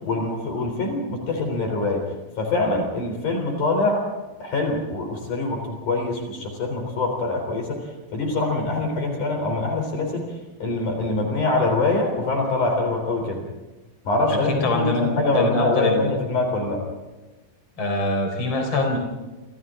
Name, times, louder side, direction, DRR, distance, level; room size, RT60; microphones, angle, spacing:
voice 1, 0.0-2.0 2.4-4.0 4.4-7.8 8.1-10.3 10.6-13.5 14.0-16.8, left 2 dB, 55° left, 3 dB, 5.1 m, -24 dB
voice 2, 14.3-16.1 17.8-19.0, left 2 dB, 35° left, 2 dB, 4.9 m, -24 dB
29.5 x 26.5 x 3.8 m, 1.2 s
omnidirectional pair, 4.3 m